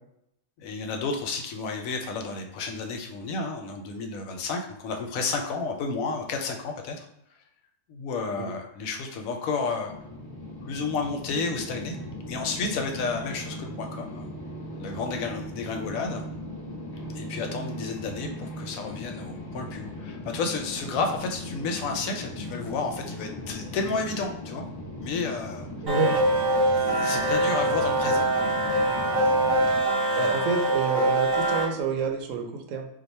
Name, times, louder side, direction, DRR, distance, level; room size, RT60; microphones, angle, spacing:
voice 1, 0.6-7.1 7.9-9.9 10.6-12.0 12.3-14.3 14.8-16.2 17.1-24.6 25.0-25.7 26.7-28.3 29.8-30.5, left 4 dB, 75° left, 3 dB, 1.0 m, -31 dB
sound 1, 9.8-29.8, left 1 dB, 35° left, 0.4 m, -38 dB
voice 2, 25.8-26.2 30.2-32.9, right 5 dB, 80° right, 3 dB, 1.0 m, -28 dB
sound 2, 25.9-31.7, right 1 dB, 40° right, 0.3 m, -23 dB
2.6 x 2.2 x 4.1 m, 0.79 s
omnidirectional pair, 1.5 m